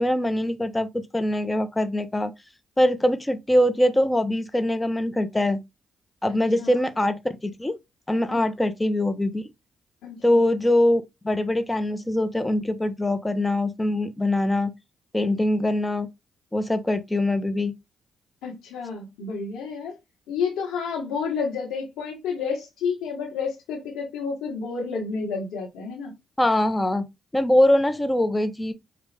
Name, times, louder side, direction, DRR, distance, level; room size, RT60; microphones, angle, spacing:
voice 1, 0.0-2.3 2.8-5.6 6.2-7.7 8.1-9.4 10.2-14.7 15.1-16.1 16.5-17.7 26.4-27.1 27.3-28.7, left 1 dB, 20° left, 0.8 m, -23 dB
voice 2, 10.0-10.4 18.4-19.9 20.3-26.1, left 5 dB, 85° left, 1.4 m, -30 dB
5.3 x 2.4 x 3.3 m
supercardioid pair, 50°, 0 cm